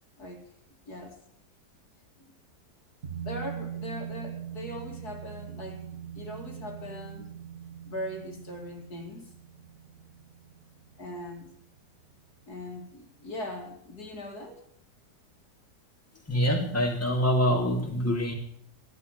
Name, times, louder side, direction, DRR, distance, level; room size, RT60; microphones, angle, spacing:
voice 1, 0.9-1.2 3.2-5.8 6.1-7.3 7.9-9.3 11.0-11.5 12.5-14.6, left 1 dB, 60° left, 2 dB, 3.0 m, -40 dB
sound 1, 3.0-12.1 12.4-12.5, right 9 dB, 40° right, 1.7 m, -41 dB
voice 2, 16.3-18.3, equal, 10° left, -1 dB, 3.0 m, -25 dB
15.0 x 11.0 x 8.2 m, 0.68 s
omnidirectional pair, 1.9 m